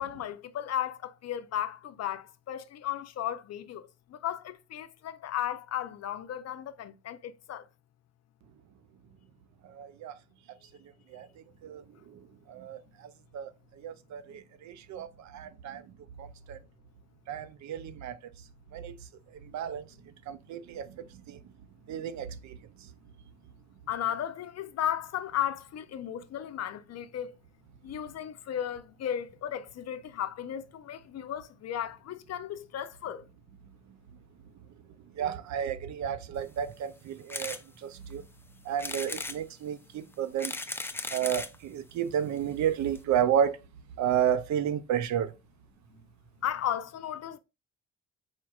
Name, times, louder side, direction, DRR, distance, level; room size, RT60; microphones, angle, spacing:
voice 1, 0.0-7.7 14.3-14.4 23.9-27.3 27.8-33.2 45.9-46.0 46.4-47.4, left 10 dB, 55° left, 0.6 m, -35 dB
voice 2, 9.6-10.2 11.1-11.3 11.6-12.2 12.5-13.5 13.8-15.8 16.2-16.6 17.3-18.2 18.7-19.0 19.5-19.9 20.3-21.4 21.9-22.5 35.2-38.2 38.7-40.5 41.1-43.6 44.0-45.3, right 9 dB, 70° right, 0.5 m, -32 dB
sound 1, 37.3-37.6 38.1-38.2 38.8-39.4 40.1-41.6 42.4-42.5 42.6-42.7 42.9-43.0, left 2 dB, 10° left, 0.4 m, -36 dB
4.6 x 4.4 x 2.3 m
cardioid pair, 90°, 30 cm